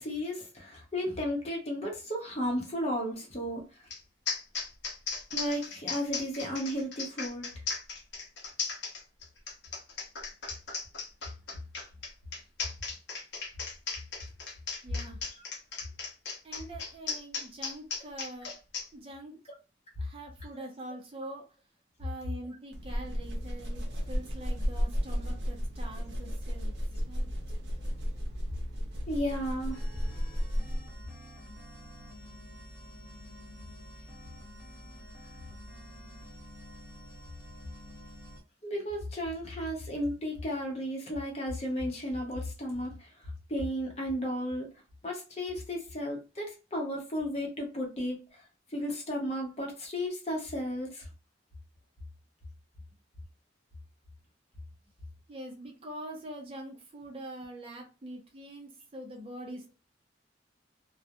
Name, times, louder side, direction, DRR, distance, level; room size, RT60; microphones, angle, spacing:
voice 1, 0.0-3.9 5.3-7.5 15.3-15.4 29.1-29.8 38.6-43.1 43.5-44.7 45.0-48.4 48.7-51.1, equal, 35° left, 0.7 m, -34 dB
sound 1, 3.9-4.0 4.3-18.9, left 5 dB, 70° left, 0.7 m, -36 dB
voice 2, 14.8-15.2 16.4-18.5 18.9-19.3 20.0-21.4 22.0-27.3 37.9-38.0 55.3-59.7, right 1 dB, 30° right, 0.5 m, -44 dB
sound 2, 22.7-31.0, equal, 70° right, 0.7 m, -33 dB
sound 3, 29.7-38.4, equal, 10° right, 0.8 m, -48 dB
2.3 x 2.0 x 2.8 m
head